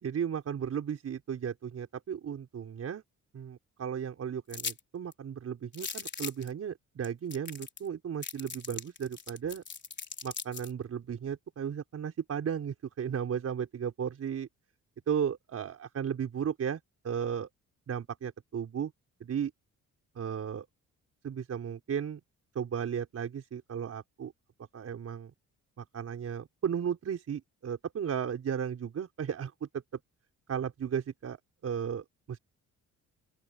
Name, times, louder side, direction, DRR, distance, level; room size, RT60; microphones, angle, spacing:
voice 1, 0.0-3.0 3.3-9.6 10.2-14.5 15.1-17.5 17.9-18.9 19.2-19.5 20.2-20.7 21.2-22.2 22.5-24.3 24.7-25.3 25.8-29.7 30.5-31.4 31.6-32.4, right 8 dB, 55° right, 5.6 m, -35 dB
sound 1, 4.5-4.8 5.1-5.2 5.7-6.5 7.0-7.1 7.3-7.9 8.2-10.7, left 5 dB, 35° left, 4.3 m, -39 dB
open air
cardioid pair, 90°, 30 cm